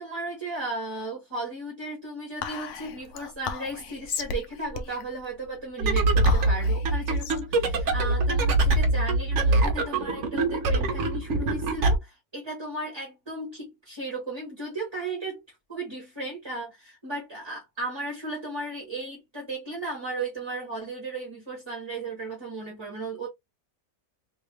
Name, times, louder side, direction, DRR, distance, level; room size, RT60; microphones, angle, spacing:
voice 1, 0.0-15.4 15.7-23.3, right 2 dB, 20° right, 1.2 m, -35 dB
Whispering, 2.4-9.1, left 6 dB, 65° left, 0.9 m, -37 dB
sound 1, 5.8-12.0, right 2 dB, 60° right, 1.0 m, -23 dB
3.4 x 2.9 x 3.2 m
omnidirectional pair, 1.6 m